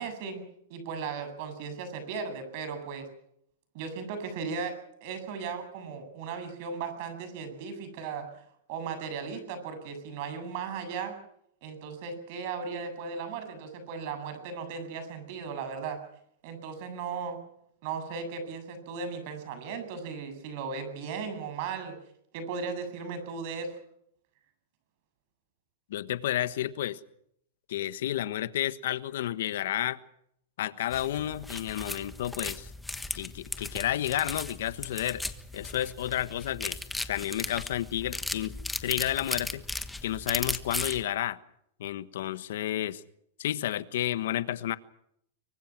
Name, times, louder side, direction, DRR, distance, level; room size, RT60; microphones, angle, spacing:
voice 1, 0.0-3.1 3.7-4.7 5.0-8.3 8.7-11.1 11.6-16.0 16.4-17.4 17.8-22.0 22.3-23.8, right 5 dB, 50° right, 9 dB, 7.8 m, -36 dB
voice 2, 25.9-27.0 27.7-30.0 30.6-32.7 33.1-35.2 35.5-36.8 37.1-38.6 38.8-39.6 40.0-41.4 41.8-43.0 43.4-44.8, left 12 dB, 70° left, 13 dB, 1.3 m, -31 dB
sound 1, 30.9-41.0, left 2 dB, 5° left, 1.3 m, -37 dB
25.0 x 24.0 x 6.1 m, 0.71 s
supercardioid pair, 140°, 0 cm